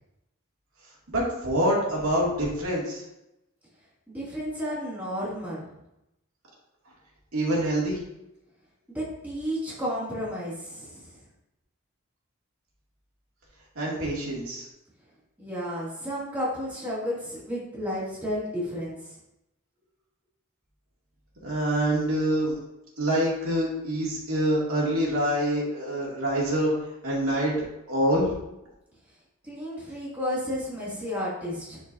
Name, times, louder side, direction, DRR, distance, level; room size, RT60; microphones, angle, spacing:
voice 1, 1.1-3.0 7.3-8.0 13.8-14.6 21.4-22.6 23.0-26.7 27.0-27.5 27.9-28.3, right 1 dB, 90° right, -5 dB, 2.4 m, -25 dB
voice 2, 4.1-5.7 8.9-11.2 15.4-19.2 29.4-31.8, equal, 10° right, -8 dB, 2.4 m, -32 dB
10.5 x 4.6 x 2.7 m, 0.89 s
head